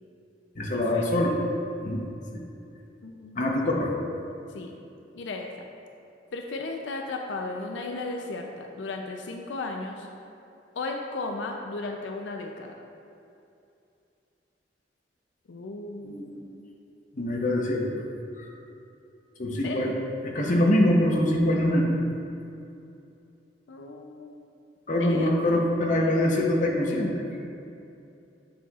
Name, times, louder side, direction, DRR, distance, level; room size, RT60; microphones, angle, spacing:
voice 1, 0.5-1.3 1.8-2.0 2.3-2.4 3.4-3.9 16.0-16.3 17.1-18.0 18.4-18.5 19.4-19.9 20.2-21.9 24.9-27.2, left 1 dB, 45° left, -1 dB, 0.8 m, -24 dB
voice 2, 3.0-3.4 4.5-4.7 5.1-5.5 6.3-10.1 10.7-12.8 15.5-16.7 17.2-17.5 19.6-19.9 23.7-24.5 25.0-25.3, left 3 dB, 90° left, 2 dB, 0.5 m, -35 dB
8.6 x 5.6 x 2.4 m, 2.6 s
head